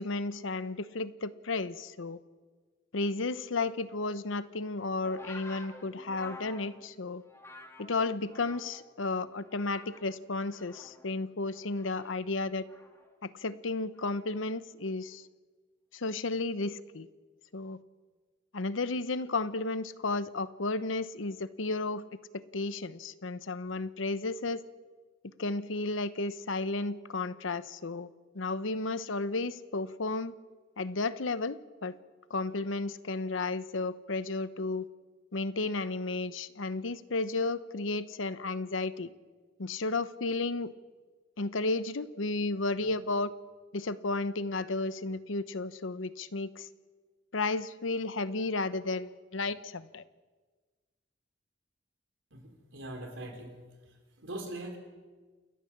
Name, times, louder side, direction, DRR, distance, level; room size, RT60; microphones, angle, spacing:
voice 1, 0.0-2.2 2.9-7.2 7.8-12.6 13.2-15.2 15.9-17.1 17.5-17.8 18.5-22.0 22.3-24.6 25.4-28.1 28.3-30.3 30.8-32.0 32.3-34.9 35.3-39.1 39.6-40.7 41.4-43.3 43.7-46.7 47.3-50.0, left 3 dB, 90° left, 14 dB, 0.9 m, -33 dB
sound 1, 5.0-8.9 9.3-10.1 10.5-13.1 14.0-14.3, left 2 dB, 15° left, 1.8 m, -50 dB
voice 2, 52.3-53.6 54.2-54.8, right 1 dB, 75° right, 4 dB, 4.1 m, -41 dB
29.0 x 14.0 x 7.4 m, 1.4 s
head